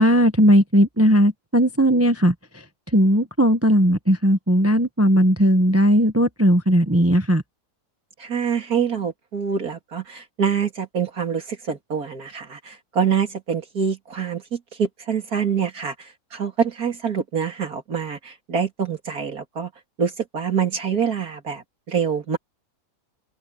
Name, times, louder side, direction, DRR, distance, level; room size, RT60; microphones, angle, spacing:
voice 1, 0.0-2.3 2.9-7.4, equal, 10° right, 0.9 m, -17 dB
voice 2, 8.2-19.7 20.0-22.4, right 7 dB, 70° right, 3.3 m, -25 dB
omnidirectional pair, 1.6 m